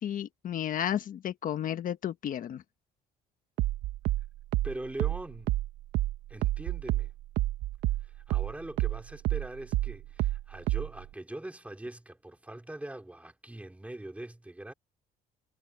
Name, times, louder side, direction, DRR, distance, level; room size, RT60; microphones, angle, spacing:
voice 1, 0.0-2.6, left 10 dB, 55° left, 1.3 m, -32 dB
sound 1, 3.6-8.5 8.8-11.0, right 16 dB, 90° right, 1.5 m, -29 dB
voice 2, 4.6-5.5 6.3-7.1 8.0-14.7, right 1 dB, 10° right, 2.8 m, -42 dB
cardioid pair, 110°, 17 cm